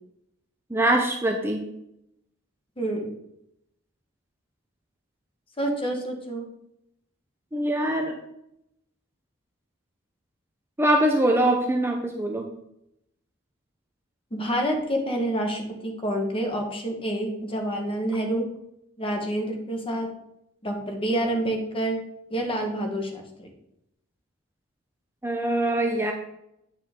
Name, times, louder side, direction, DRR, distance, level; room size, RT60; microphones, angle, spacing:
voice 1, 0.7-1.6 7.5-8.2 10.8-12.5 25.2-26.1, right 1 dB, 10° right, 2 dB, 0.7 m, -23 dB
voice 2, 2.8-3.1 5.6-6.5 14.3-18.5 19.0-20.1 20.6-22.0 22.3-23.5, right 1 dB, 25° left, 3 dB, 1.4 m, -28 dB
8.8 x 5.7 x 3.7 m, 0.80 s
head